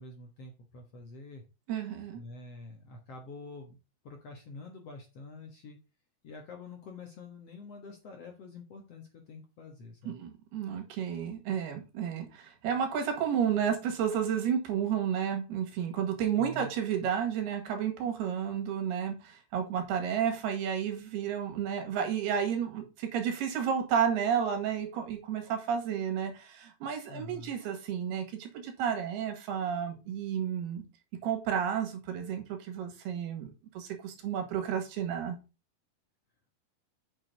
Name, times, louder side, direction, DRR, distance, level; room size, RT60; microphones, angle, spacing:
voice 1, 0.0-1.4 2.1-3.8 4.0-5.8 6.2-10.2 16.4-16.7 17.0-17.1 27.1-27.6, left 3 dB, 60° left, 1.8 m, -47 dB
voice 2, 1.7-2.2 10.1-30.8 31.2-33.5 33.8-35.4, right 8 dB, 85° right, 4.0 m, -31 dB
8.7 x 6.3 x 3.9 m
omnidirectional pair, 4.5 m